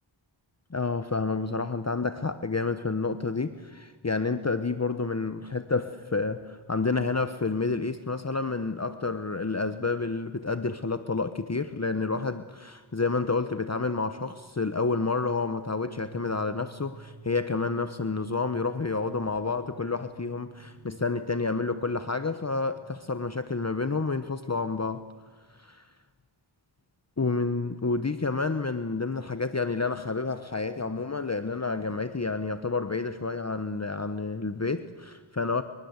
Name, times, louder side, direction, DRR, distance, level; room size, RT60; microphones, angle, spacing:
voice 1, 0.7-25.0 25.5-25.9 27.2-35.6, left 4 dB, 35° left, 11 dB, 1.1 m, -29 dB
sound 1, 15.8-24.6, right 5 dB, 60° right, 7.5 m, -52 dB
27.5 x 23.5 x 8.2 m, 1.4 s
wide cardioid pair, 60°, 48 cm